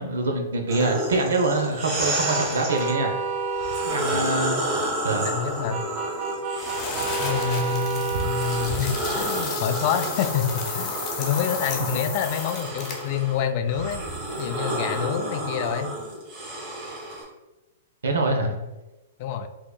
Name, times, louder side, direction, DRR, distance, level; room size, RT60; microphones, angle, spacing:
voice 1, 0.0-3.1 3.9-4.6 5.0-5.3 11.9-12.0 18.0-18.6, right 3 dB, 85° right, 3 dB, 0.6 m, -24 dB
sound 1, 0.7-2.9 3.5-7.6 8.1-17.2, right 1 dB, 30° right, 1.3 m, -31 dB
sound 2, 2.3-4.0 5.7-8.7, right 4 dB, 50° right, 0.8 m, -29 dB
voice 2, 5.2-5.9 7.2-14.0 14.4-15.9 18.4-18.6 19.2-19.5, left 8 dB, 45° left, 8 dB, 0.3 m, -27 dB
sound 3, 6.6-13.2, left 4 dB, 30° left, 0.7 m, -33 dB
4.6 x 2.8 x 2.2 m, 1.1 s
hypercardioid pair, 135°, 0 cm